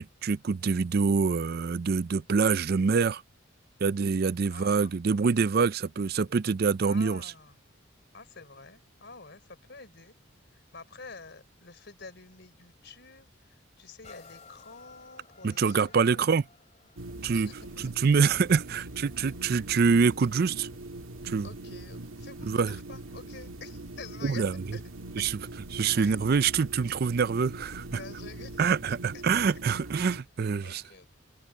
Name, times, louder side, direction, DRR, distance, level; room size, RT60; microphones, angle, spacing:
voice 1, 0.0-3.2 3.8-7.3 15.4-16.4 17.2-17.5 17.8-20.7 21.2-21.5 22.5-22.7 24.2-24.6 25.2-25.4 25.7-28.0 28.6-30.8, right 5 dB, 50° right, 0.4 m, -25 dB
voice 2, 4.5-5.0 6.8-7.6 8.1-10.1 10.5-16.4 17.3-17.9 21.4-24.4 24.7-24.8 25.2-25.3 26.0-26.2 27.9-29.2 29.5-29.6 30.1-30.2 30.6-31.1, left 4 dB, 55° left, 3.9 m, -48 dB
sound 1, 14.0-21.6 22.2-22.3, left 5 dB, 35° left, 2.7 m, -58 dB
sound 2, 17.0-30.2, right 2 dB, 85° right, 2.0 m, -42 dB
open air
head